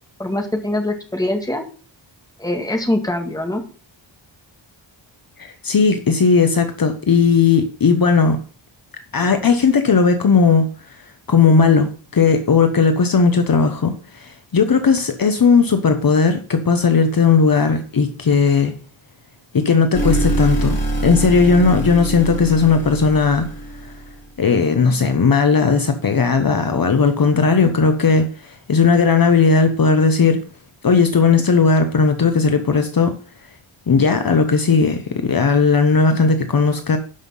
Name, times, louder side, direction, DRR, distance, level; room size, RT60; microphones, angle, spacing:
voice 1, 0.2-1.6 2.4-3.6, left 1 dB, 10° left, 1.9 m, -23 dB
voice 2, 5.4-8.4 9.1-10.7 11.3-18.7 19.5-20.8 21.0-23.5 24.4-30.4 30.8-33.2 33.9-37.0, left 5 dB, 50° left, 1.0 m, -16 dB
sound 1, 19.9-24.2, right 1 dB, 35° left, 4.1 m, -24 dB
12.0 x 5.7 x 5.5 m
wide cardioid pair, 170°, 45 cm